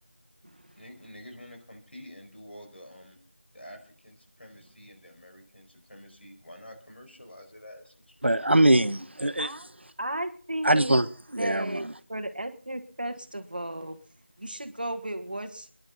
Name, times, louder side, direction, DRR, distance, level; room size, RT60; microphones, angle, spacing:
voice 1, 0.8-3.2 3.5-8.3, equal, 70° left, 5.1 m, -48 dB
voice 2, 8.2-9.7 10.6-11.1 11.3-11.9, right 1 dB, 75° right, 1.0 m, -23 dB
voice 3, 10.0-11.0 11.4-14.0 14.4-15.7, right 1 dB, 50° right, 1.6 m, -34 dB
26.5 x 11.0 x 3.9 m
figure-of-eight pair, 175°, 6 cm